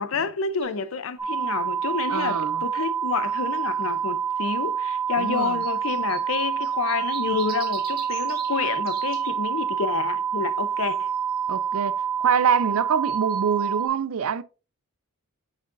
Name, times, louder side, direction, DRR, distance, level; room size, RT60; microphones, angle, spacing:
voice 1, 0.0-11.1, left 5 dB, 70° left, 0.5 m, -29 dB
sound 1, 0.6-0.7 3.1-3.7 5.4-9.3 10.9-11.5 13.1-13.8, right 5 dB, 45° right, 1.5 m, -42 dB
sound 2, 1.2-13.9, right 7 dB, 15° right, 1.4 m, -27 dB
voice 2, 2.1-2.6 5.2-5.6 11.5-11.9 12.2-14.4, right 7 dB, 80° right, 0.4 m, -25 dB
6.3 x 6.1 x 2.5 m
head